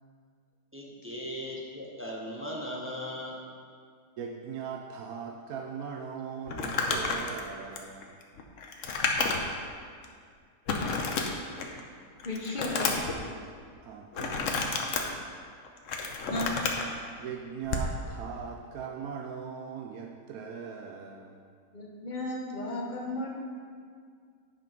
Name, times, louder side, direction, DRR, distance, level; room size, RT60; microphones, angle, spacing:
voice 1, 0.7-3.4, equal, 10° right, -3 dB, 0.7 m, -38 dB
voice 2, 4.2-8.1 13.8-14.8 17.2-21.5, right 6 dB, 70° right, 1 dB, 1.0 m, -40 dB
Crumpling crinkling, 6.5-9.6 10.0-10.1 10.7-11.8 12.2-13.2 14.1-15.0 15.6-16.9 17.6-17.9, left 4 dB, 55° left, 1.1 m, -30 dB
voice 3, 12.2-12.9 16.3-16.5 21.7-23.3, left 1 dB, 30° left, -2 dB, 1.1 m, -34 dB
8.8 x 5.6 x 5.2 m, 2.1 s
omnidirectional pair, 1.8 m